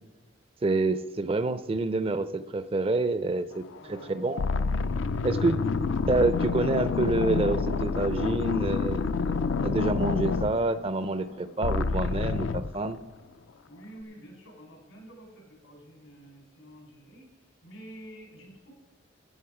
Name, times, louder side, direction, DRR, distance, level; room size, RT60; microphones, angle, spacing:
voice 1, 0.6-3.6 3.9-4.4 5.2-5.6 6.1-9.0 9.3-9.4 9.6-13.0, right 2 dB, 25° right, 13 dB, 0.4 m, -27 dB
sound 1, 3.7-4.0 4.4-11.3 11.6-12.7, left 4 dB, 65° left, 0.4 m, -28 dB
voice 2, 3.8-5.2 13.7-18.7, right 1 dB, 90° left, 1 dB, 3.9 m, -49 dB
13.5 x 8.3 x 4.9 m, 1.2 s
head